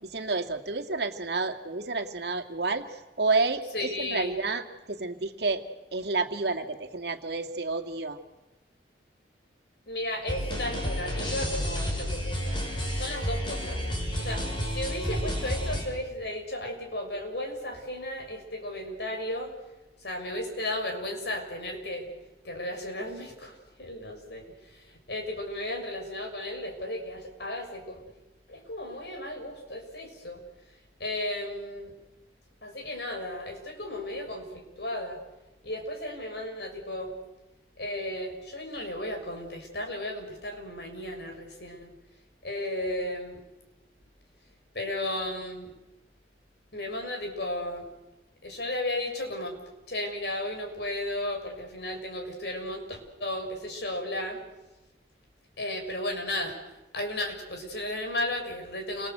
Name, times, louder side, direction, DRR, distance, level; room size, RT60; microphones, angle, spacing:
voice 1, 0.0-4.6 4.9-5.6 5.9-8.2, right 3 dB, 65° right, 4 dB, 2.5 m, -30 dB
voice 2, 3.7-4.3 9.9-12.6 12.9-13.8 14.2-14.4 14.7-19.5 20.0-22.1 22.4-28.0 28.5-30.4 31.0-31.9 32.6-35.2 35.6-37.1 37.8-41.9 42.4-43.4 44.7-45.7 46.7-47.9 48.4-49.6 49.9-54.4 55.6-56.5 56.9-59.1, left 1 dB, 65° left, 4 dB, 6.7 m, -34 dB
sound 1, 10.3-15.8, equal, 25° left, 6.4 m, -31 dB
29.5 x 24.5 x 8.2 m, 1.1 s
head